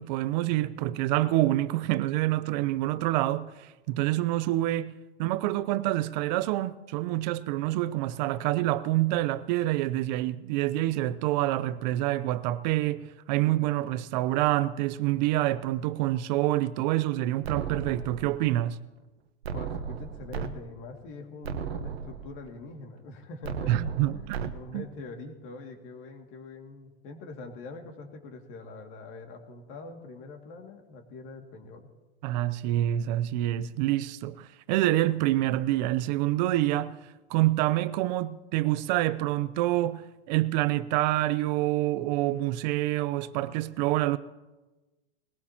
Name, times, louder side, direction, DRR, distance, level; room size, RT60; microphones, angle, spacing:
voice 1, 0.0-4.9 5.2-18.8 23.7-24.8 32.2-37.0 37.3-40.0 40.3-44.2, right 15 dB, 45° right, 0.6 m, -27 dB
sound 1, 17.4-18.5 19.4-20.5 20.9-21.0 21.4-22.5 23.4-24.5, right 6 dB, 85° right, 1.2 m, -35 dB
voice 2, 19.5-31.9, left 3 dB, 40° left, 2.2 m, -44 dB
20.5 x 17.5 x 2.9 m
hypercardioid pair, 130°, 31 cm